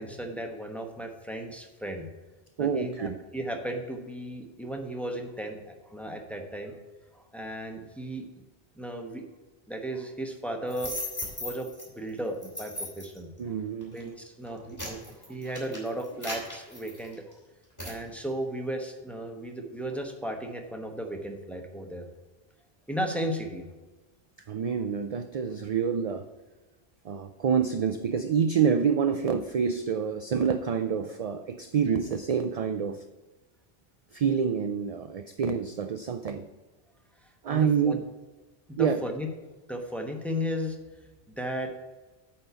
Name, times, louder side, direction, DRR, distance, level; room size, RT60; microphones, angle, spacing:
voice 1, 0.0-2.1 2.6-6.7 7.1-8.3 8.8-9.2 9.7-11.0 11.4-13.5 13.9-15.0 15.3-17.2 17.8-22.1 22.9-23.7 24.5-24.6 37.5-38.0 38.8-39.3 39.7-40.8 41.4-41.7, equal, ahead, 2 dB, 1.0 m, -35 dB
voice 2, 2.6-3.2 13.4-13.9 14.8-14.9 24.5-26.3 27.0-33.0 34.1-36.5 37.4-38.0 38.8-39.0, right 7 dB, 50° right, 8 dB, 0.4 m, -27 dB
sound 1, 10.7-11.9 12.4-13.2 13.8-14.0 14.5-17.3 17.8-18.0, left 1 dB, 15° left, 3.0 m, -37 dB
9.0 x 4.3 x 6.8 m, 1.2 s
omnidirectional pair, 1.1 m